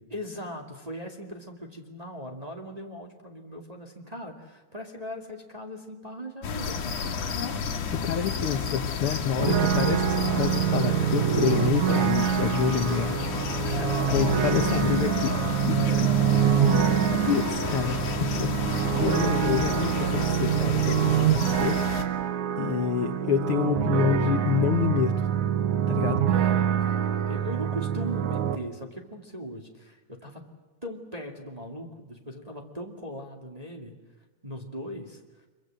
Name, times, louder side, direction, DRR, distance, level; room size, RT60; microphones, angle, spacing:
voice 1, 0.1-7.0 13.6-14.6 15.9-17.0 26.3-30.4 30.8-34.0 34.4-35.4, equal, 15° right, 2 dB, 2.0 m, -39 dB
sound 1, 6.4-22.0, left 5 dB, 80° left, 3.5 m, -31 dB
voice 2, 7.3-13.1 14.1-16.1 17.2-21.8 22.6-25.3 25.9-26.2, left 8 dB, 60° left, 6 dB, 1.7 m, -28 dB
sound 2, 9.4-28.6, right 10 dB, 75° right, 2.6 m, -25 dB
25.0 x 23.5 x 7.7 m, 1.3 s
omnidirectional pair, 3.5 m